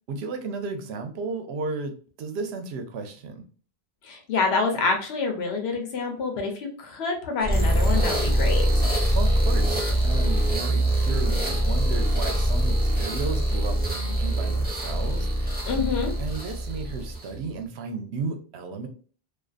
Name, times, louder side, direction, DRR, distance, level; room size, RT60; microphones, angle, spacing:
voice 1, 0.1-3.4 9.1-15.6 16.2-18.9, right 4 dB, 85° right, 6 dB, 0.9 m, -34 dB
voice 2, 4.0-8.9 15.6-16.1, left 4 dB, 85° left, 3 dB, 1.0 m, -27 dB
sound 1, 7.4-17.4, right 1 dB, 10° right, 0.8 m, -23 dB
2.4 x 2.4 x 2.4 m, 0.42 s
omnidirectional pair, 1.0 m